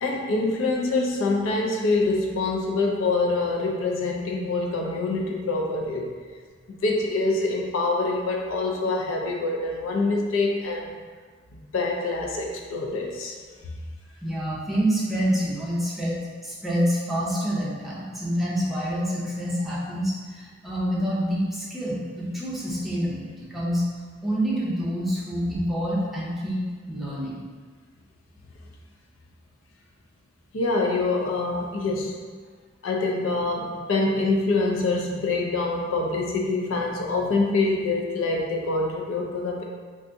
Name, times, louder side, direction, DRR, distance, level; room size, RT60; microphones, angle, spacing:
voice 1, 0.0-6.1 6.7-10.9 11.7-13.3 30.5-32.3 32.8-39.6, left 3 dB, 90° left, 0 dB, 0.4 m, -25 dB
voice 2, 14.2-23.8 24.2-26.6 26.9-27.4, equal, ahead, -7 dB, 0.6 m, -27 dB
3.4 x 2.5 x 2.6 m, 1.6 s
head